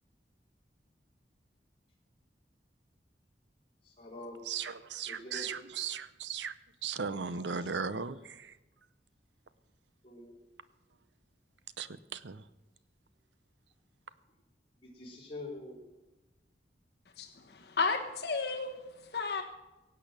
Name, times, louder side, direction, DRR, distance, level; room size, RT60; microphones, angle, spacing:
voice 1, 3.9-5.7 7.2-7.8 10.0-10.3 14.8-15.8, left 2 dB, 30° left, -3 dB, 4.0 m, -47 dB
voice 2, 4.5-6.5 6.8-8.5 11.8-12.4, right 6 dB, 85° right, 15 dB, 0.7 m, -37 dB
voice 3, 17.2-18.7 19.0-19.4, left 4 dB, 65° left, 3 dB, 1.4 m, -33 dB
16.5 x 8.7 x 6.6 m, 1.1 s
head